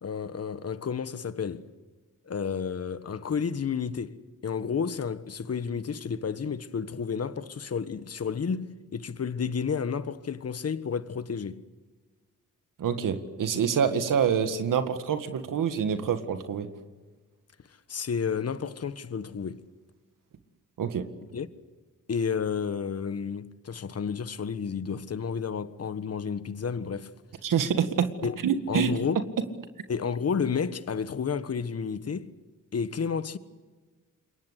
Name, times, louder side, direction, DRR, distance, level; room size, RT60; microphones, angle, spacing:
voice 1, 0.0-1.7 2.3-11.6 13.9-14.0 17.9-19.6 21.3-21.5 22.1-27.1 28.2-28.4 28.7-29.3 29.9-32.3 32.7-33.4, left 6 dB, 50° left, 1.5 m, -31 dB
voice 2, 12.8-16.7 20.8-21.1 27.4-28.1 28.4-28.9, right 7 dB, 80° right, 1.9 m, -26 dB
27.5 x 22.5 x 8.2 m
cardioid pair, 75°, 32 cm